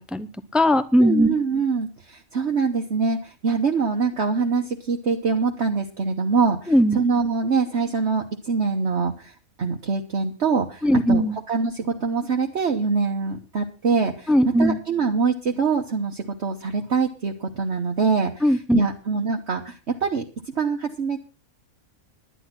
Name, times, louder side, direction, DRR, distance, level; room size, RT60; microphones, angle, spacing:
voice 1, 0.0-1.3 6.7-7.0 10.8-11.4 14.3-14.8 18.4-18.8, equal, ahead, 13 dB, 0.3 m, -19 dB
voice 2, 1.0-21.2, right 5 dB, 50° right, 2 dB, 1.4 m, -24 dB
11.0 x 10.5 x 5.9 m, 0.34 s
omnidirectional pair, 1.5 m